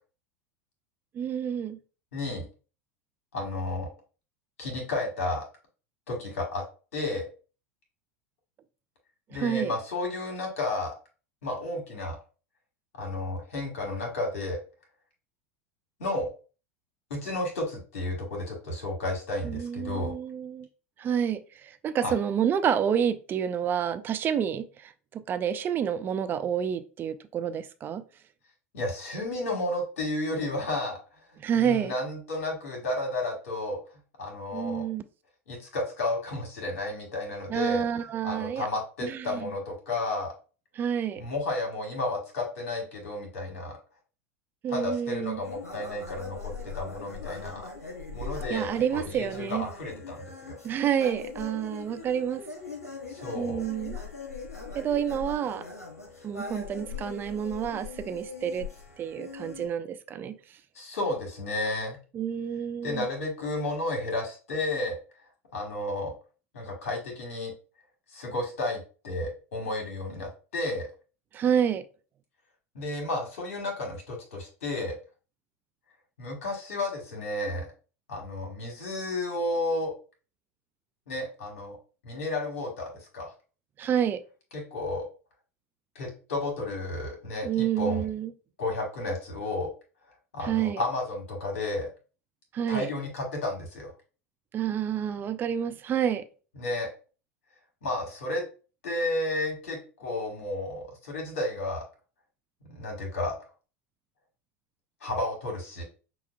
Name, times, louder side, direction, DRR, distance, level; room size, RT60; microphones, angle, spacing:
voice 1, 1.1-1.8 9.3-9.7 19.4-20.7 21.0-28.1 31.4-31.9 34.5-35.0 37.5-38.7 39.0-39.5 40.8-41.2 44.6-45.4 48.5-49.7 50.6-52.4 53.3-54.0 54.7-55.6 56.2-58.7 59.0-60.4 62.1-63.1 71.3-71.8 83.8-84.2 87.4-88.3 90.5-90.8 92.5-92.9 94.5-96.3, right 8 dB, 25° right, 10 dB, 0.3 m, -29 dB
voice 2, 2.1-2.5 3.3-3.9 4.6-5.5 6.1-6.6 6.9-7.3 9.3-11.0 11.4-12.2 12.9-14.6 16.0-16.3 17.1-20.1 22.0-22.1 28.7-31.0 31.3-33.8 34.2-34.9 35.5-37.8 38.2-40.3 41.2-43.8 44.7-47.7 48.1-50.6 53.1-53.6 60.7-62.0 62.8-65.0 65.5-66.1 66.5-67.5 68.1-70.9 72.7-75.0 76.2-77.7 78.1-79.9 81.1-81.8 82.0-83.3 84.5-85.0 85.9-88.1 88.6-89.7 90.3-91.9 92.7-93.9 96.5-96.9 97.8-98.4 98.8-101.8 102.7-103.4 105.0-105.8, left 2 dB, 65° left, 0 dB, 1.3 m, -32 dB
sound 1, 45.4-59.7, left 4 dB, 85° left, 0.8 m, -41 dB
5.7 x 2.3 x 2.2 m, 0.36 s
figure-of-eight pair, 80°, 8 cm